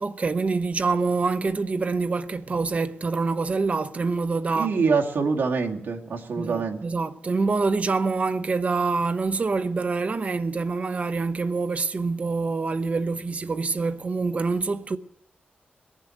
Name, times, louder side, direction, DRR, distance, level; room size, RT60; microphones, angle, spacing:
voice 1, 0.0-4.7 6.4-15.0, right 4 dB, 35° right, 0.8 m, -26 dB
voice 2, 4.6-6.8, right 5 dB, 75° right, 2.1 m, -25 dB
20.5 x 7.4 x 8.9 m
wide cardioid pair, 135°, 4 cm